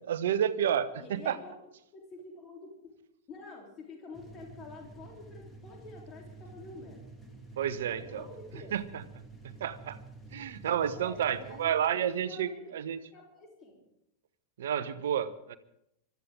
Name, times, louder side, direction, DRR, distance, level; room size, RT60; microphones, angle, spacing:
voice 1, 0.1-1.4 7.6-8.2 8.7-9.0 9.4-10.0 10.3-13.0 14.6-15.6, right 9 dB, 60° right, 14 dB, 1.0 m, -30 dB
voice 2, 1.0-1.5 1.9-2.9 3.3-7.1 8.0-8.8 10.9-13.8, left 2 dB, 30° left, 0 dB, 3.6 m, -48 dB
sound 1, 4.1-11.8, right 3 dB, 10° left, 2.3 m, -50 dB
24.0 x 13.0 x 3.8 m, 0.77 s
figure-of-eight pair, 90°, 0 cm